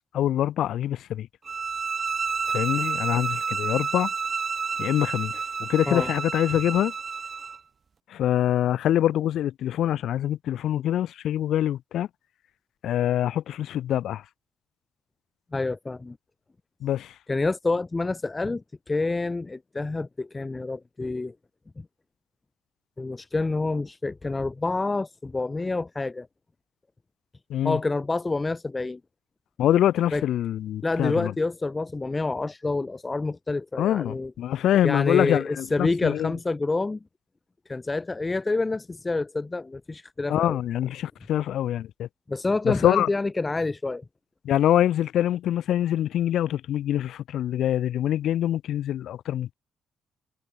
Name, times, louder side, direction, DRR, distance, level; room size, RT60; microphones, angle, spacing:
voice 1, 0.1-1.3 2.5-4.1 4.8-6.9 8.1-12.1 12.8-14.2 16.8-17.1 27.5-27.8 29.6-31.3 33.8-36.3 40.3-42.1 42.6-43.1 44.4-49.5, left 11 dB, 75° left, 1.9 m, -25 dB
sound 1, 1.4-7.6, right 5 dB, 40° right, 2.5 m, -30 dB
voice 2, 15.5-16.2 17.3-21.3 23.0-26.3 27.6-29.0 30.1-30.2 30.8-34.3 34.8-37.0 37.7-40.6 42.3-44.0, left 3 dB, 20° left, 1.7 m, -28 dB
cardioid pair, 90°, 0 cm